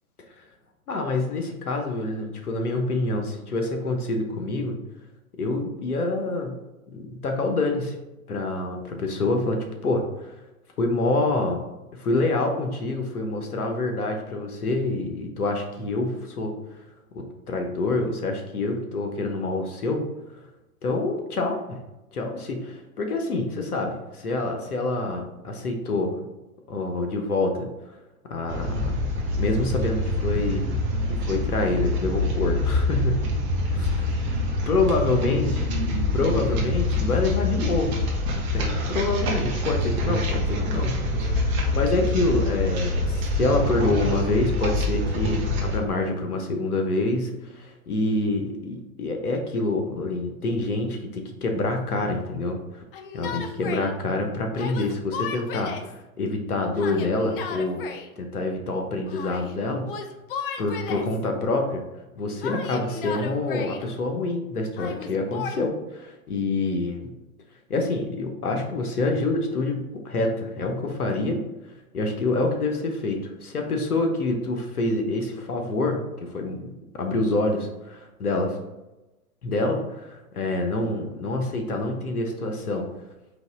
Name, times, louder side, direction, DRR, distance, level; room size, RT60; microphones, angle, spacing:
voice 1, 0.9-4.8 5.4-6.5 6.9-8.0 8.3-10.3 10.8-11.6 11.9-16.6 17.1-20.1 20.8-21.8 22.1-26.2 26.7-27.7 28.2-29.0 29.3-30.7 31.1-33.3 33.7-34.1 34.7-35.6 36.1-38.0 38.4-52.8 53.1-57.8 58.2-59.9 60.6-61.8 62.2-67.1 67.7-71.4 71.9-78.6 79.4-82.9, left 2 dB, 90° left, 3 dB, 1.0 m, -27 dB
sound 1, 28.5-45.8, left 1 dB, 25° right, 0.8 m, -25 dB
Yell, 52.9-53.9 54.6-55.9 56.8-58.1 59.1-59.6 59.9-61.2 62.4-63.9 64.8-65.6, left 6 dB, 40° left, 0.4 m, -35 dB
4.0 x 2.9 x 3.7 m, 1.0 s
hypercardioid pair, 120°, 44 cm